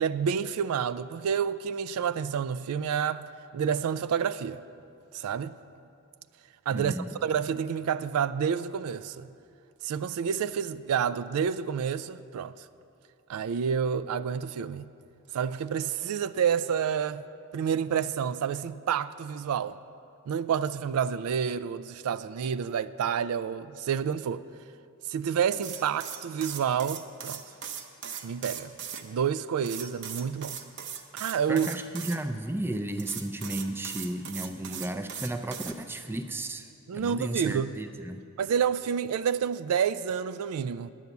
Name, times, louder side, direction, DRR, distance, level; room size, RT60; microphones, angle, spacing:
voice 1, 0.0-4.6 5.1-5.6 6.7-6.9 7.2-9.3 9.8-12.5 13.3-14.9 15.3-17.2 17.5-19.7 20.3-24.4 25.1-27.4 28.2-28.7 29.0-30.6 31.2-31.7 36.9-37.8 38.4-40.9, right 7 dB, 80° right, 0.3 m, -29 dB
voice 2, 6.7-7.1 31.5-36.7 36.9-38.2, right 1 dB, 10° right, 0.4 m, -34 dB
sound 1, 25.5-29.0 29.6-32.2 33.0-35.7, right 8 dB, 50° right, 0.7 m, -39 dB
10.5 x 8.1 x 7.0 m
head